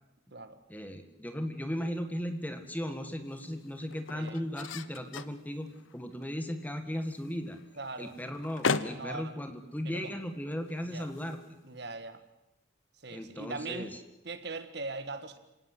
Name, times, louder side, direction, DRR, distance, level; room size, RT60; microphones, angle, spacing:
voice 1, 0.7-7.6 8.0-11.4 13.1-14.0, equal, 10° left, 7 dB, 1.7 m, -37 dB
sound 1, 1.7-12.1, left 4 dB, 80° left, 1.1 m, -40 dB
voice 2, 7.8-8.1 9.0-9.3 9.8-10.2 10.8-11.1 11.6-12.2 13.0-13.9 14.2-15.4, right 3 dB, 55° right, 10 dB, 1.7 m, -40 dB
27.5 x 18.0 x 7.9 m, 0.93 s
head